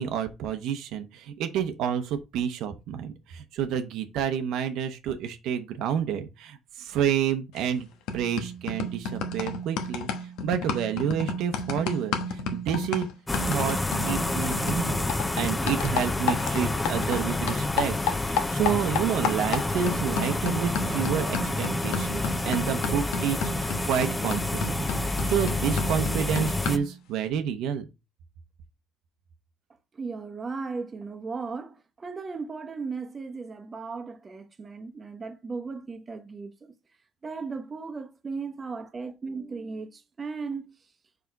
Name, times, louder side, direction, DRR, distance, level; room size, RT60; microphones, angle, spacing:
voice 1, 0.0-7.9 8.1-10.1 10.4-13.1 13.5-13.8 14.0-18.0 18.2-24.9 25.3-27.9, right 8 dB, 75° right, 0.9 m, -29 dB
sound 1, 7.6-7.8 8.1-17.2 17.5-27.0, left 4 dB, 90° left, 1.1 m, -32 dB
sound 2, 13.3-26.8, left 2 dB, 10° left, 0.5 m, -29 dB
voice 2, 29.9-36.8 37.2-40.7, right 4 dB, 25° right, 0.9 m, -36 dB
5.0 x 4.7 x 4.6 m
cardioid pair, 130°, 0 cm